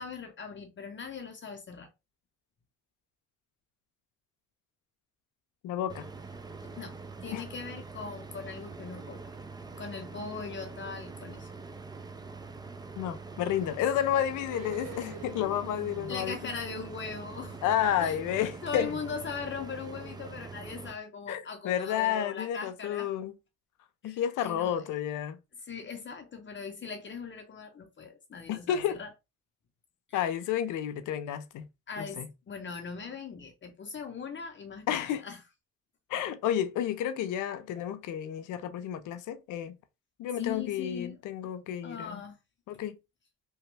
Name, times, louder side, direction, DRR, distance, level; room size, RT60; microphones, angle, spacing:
voice 1, 0.0-1.9 6.8-6.9 7.2-9.3 9.8-11.5 16.1-17.6 18.0-18.2 18.6-23.1 24.0-24.9 25.6-29.1 30.1-30.2 31.9-35.4 40.4-41.2 41.8-42.4, left 5 dB, 40° left, 0.7 m, -40 dB
voice 2, 5.6-6.1 7.3-7.4 13.0-16.4 17.6-18.9 21.3-23.3 24.0-25.4 28.5-29.0 30.1-31.7 32.0-32.3 34.9-35.2 36.1-39.8 40.2-42.2 42.7-43.0, left 10 dB, 85° left, 0.5 m, -31 dB
sound 1, 5.9-20.9, right 4 dB, 15° right, 0.4 m, -44 dB
sound 2, 14.5-19.9 20.2-20.3, right 4 dB, 85° right, 1.0 m, -47 dB
3.0 x 2.2 x 3.2 m
cardioid pair, 90°, 30 cm